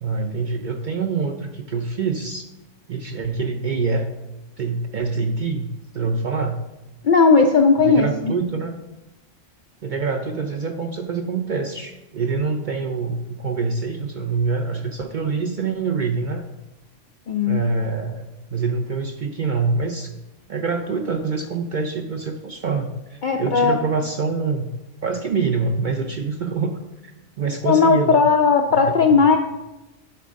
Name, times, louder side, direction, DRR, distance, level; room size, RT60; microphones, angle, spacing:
voice 1, 0.0-2.4 2.9-4.1 4.6-5.7 5.9-6.6 7.8-8.7 9.8-16.5 17.4-20.1 20.5-24.7 25.0-27.1 27.4-28.2 28.9-29.2, right 4 dB, 55° right, 4 dB, 0.5 m, -25 dB
voice 2, 7.0-8.4 17.3-17.6 23.2-23.8 27.6-29.4, left 4 dB, 65° left, 4 dB, 0.5 m, -16 dB
10.0 x 3.5 x 5.1 m, 0.99 s
omnidirectional pair, 1.3 m